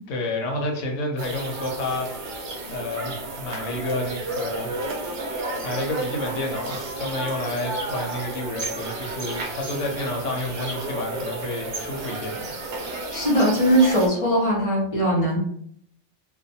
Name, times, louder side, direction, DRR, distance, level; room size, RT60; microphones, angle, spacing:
voice 1, 0.1-2.4 2.7-4.7 5.6-12.6, left 2 dB, 85° left, 2 dB, 1.0 m, -30 dB
sound 1, 1.2-14.1, right 2 dB, 65° right, 0.8 m, -32 dB
voice 2, 13.1-15.4, right 1 dB, 35° left, -3 dB, 0.6 m, -20 dB
2.5 x 2.2 x 2.7 m, 0.66 s
omnidirectional pair, 1.2 m